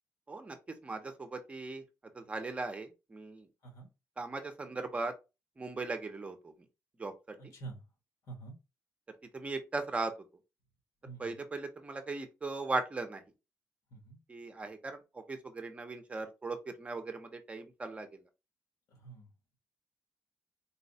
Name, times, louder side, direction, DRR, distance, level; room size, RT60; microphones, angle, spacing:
voice 1, 0.3-1.8 2.1-3.5 4.2-5.1 5.6-6.5 7.0-7.1 9.3-10.1 11.2-13.2 14.3-18.2, right 3 dB, 20° right, 6 dB, 0.7 m, -38 dB
voice 2, 7.4-7.8 8.2-8.6 11.0-11.4 13.9-14.2 18.9-19.3, right 4 dB, 75° left, 3 dB, 1.9 m, -47 dB
4.0 x 2.3 x 4.0 m, 0.26 s
cardioid pair, 135°, 6 cm